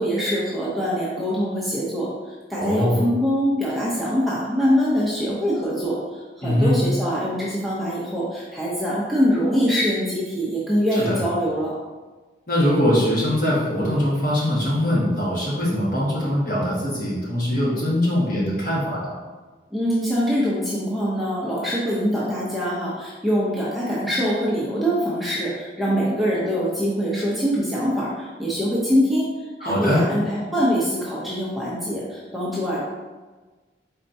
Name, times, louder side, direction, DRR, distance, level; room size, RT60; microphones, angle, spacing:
voice 1, 0.0-11.7 19.7-32.8, equal, ahead, -7 dB, 0.6 m, -23 dB
voice 2, 2.5-3.1 6.4-6.8 10.9-11.2 12.5-19.2 29.6-30.0, left 1 dB, 45° left, -6 dB, 1.4 m, -22 dB
4.3 x 4.2 x 2.6 m, 1.3 s
head